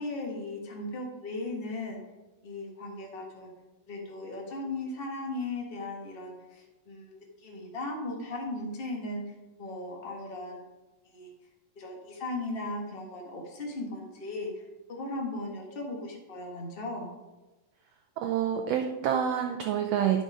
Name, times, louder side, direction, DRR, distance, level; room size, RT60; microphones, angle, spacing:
voice 1, 0.0-2.0 2.4-3.5 3.9-9.2 9.6-10.6 11.0-11.3 11.7-14.5 14.9-17.1, left 2 dB, 30° left, 0 dB, 1.0 m, -37 dB
voice 2, 18.2-20.2, right 9 dB, 80° right, 4 dB, 1.5 m, -27 dB
11.5 x 5.4 x 4.9 m, 1.1 s
omnidirectional pair, 3.5 m